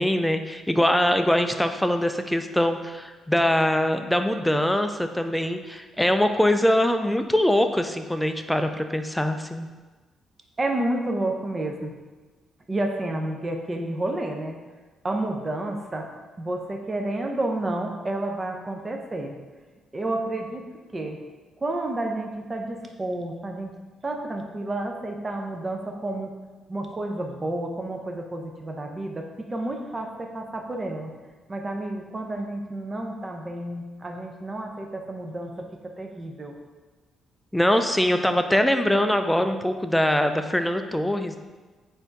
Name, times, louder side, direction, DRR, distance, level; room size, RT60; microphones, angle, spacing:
voice 1, 0.0-9.7 37.5-41.4, left 1 dB, 5° left, 7 dB, 0.4 m, -23 dB
voice 2, 10.6-11.9 12.7-14.6 15.0-16.1 16.4-19.3 19.9-20.6 20.9-21.2 21.6-23.7 24.0-26.3 26.7-31.1 31.5-36.6, right 1 dB, 30° right, 3 dB, 0.7 m, -30 dB
4.3 x 2.7 x 4.5 m, 1.3 s
supercardioid pair, 55°, 0 cm